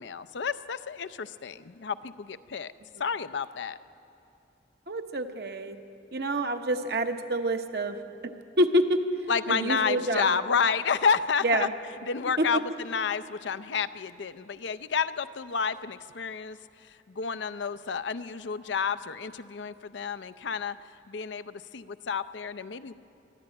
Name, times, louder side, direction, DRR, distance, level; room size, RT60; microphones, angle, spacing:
voice 1, 0.0-2.7 3.0-3.8 9.3-11.7 12.0-16.6 16.8-20.8 21.1-22.9, left 6 dB, 80° left, 13 dB, 0.5 m, -30 dB
voice 2, 4.9-5.7 6.1-8.0 8.2-8.3 8.6-9.0 9.5-10.4 11.4-11.7 12.4-12.6, right 1 dB, 60° right, 6 dB, 1.0 m, -27 dB
22.5 x 13.0 x 8.7 m, 2.7 s
head